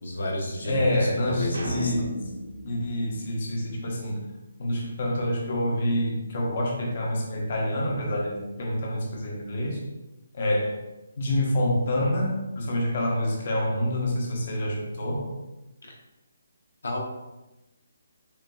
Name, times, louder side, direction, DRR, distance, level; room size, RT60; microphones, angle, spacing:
voice 1, 0.0-1.9 15.8-15.9 16.8-17.0, left 1 dB, 85° left, 0 dB, 0.9 m, -30 dB
voice 2, 0.7-2.1 2.6-4.2 4.6-9.8 10.3-10.8 11.2-15.3, left 1 dB, 45° left, -2 dB, 1.0 m, -27 dB
sound 1, 1.5-4.0, right 1 dB, 75° right, 1.5 m, -37 dB
7.1 x 2.5 x 2.4 m, 1.0 s
hypercardioid pair, 165°, 0 cm